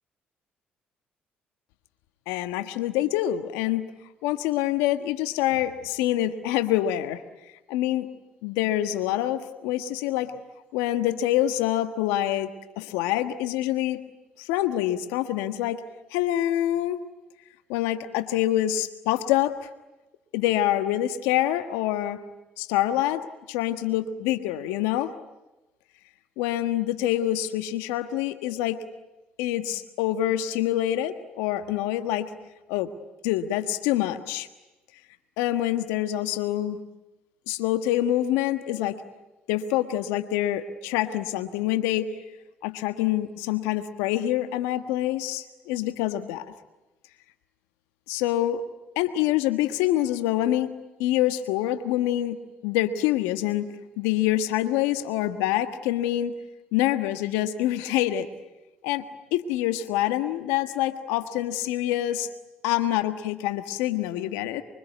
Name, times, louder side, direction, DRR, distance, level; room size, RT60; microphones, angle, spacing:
voice 1, 2.3-3.9 4.2-7.2 7.7-8.1 8.4-10.3 10.7-12.5 12.8-14.0 14.4-15.8 16.1-17.0 17.7-19.5 20.3-22.2 22.6-23.2 23.5-25.1 26.4-28.8 29.4-32.3 32.7-32.9 33.2-34.5 35.4-36.8 37.5-39.0 39.5-42.1 42.6-46.4 48.1-48.6 48.9-50.7 51.0-56.3 56.7-58.3 58.8-59.0 59.3-62.3 62.6-64.6, left 13 dB, 85° left, 10 dB, 1.5 m, -26 dB
24.5 x 24.0 x 9.4 m, 1.0 s
hypercardioid pair, 60°, 4 cm